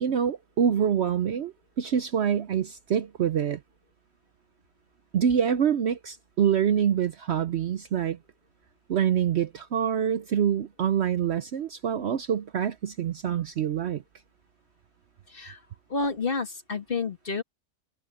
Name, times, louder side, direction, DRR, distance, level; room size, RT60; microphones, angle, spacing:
voice 1, 0.0-3.6 5.1-8.2 8.9-14.0, right 8 dB, 60° right, 0.8 m, -26 dB
voice 2, 15.3-15.6 15.9-17.4, left 4 dB, 40° left, 2.1 m, -30 dB
omnidirectional pair, 1.5 m